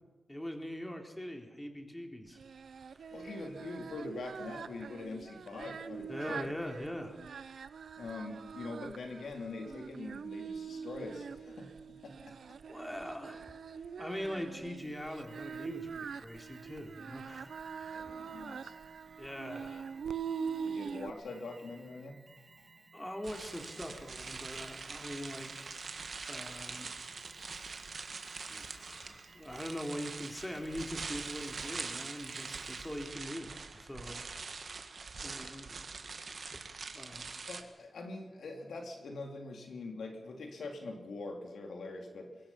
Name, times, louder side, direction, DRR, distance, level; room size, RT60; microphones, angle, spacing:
voice 1, 0.3-2.4 2.9-3.0 6.1-7.2 12.7-13.5 14.0-17.5 17.8-18.0 19.2-19.9 22.9-25.7 26.2-26.9 28.5-34.2 35.2-35.7 36.3-37.4, equal, 10° left, 3 dB, 3.4 m, -42 dB
Singing, 2.4-21.1, right 6 dB, 85° right, 0.7 m, -43 dB
voice 2, 3.1-6.5 8.0-12.4 17.9-18.7 20.6-22.3 37.5-42.4, left 3 dB, 85° left, 2 dB, 3.0 m, -43 dB
Alarm, 14.8-33.2, right 3 dB, 40° right, 2.8 m, -60 dB
sound 1, 23.2-37.6, right 4 dB, 60° right, 1.8 m, -44 dB
23.0 x 22.0 x 5.8 m, 1.2 s
cardioid pair, 70°, 0 cm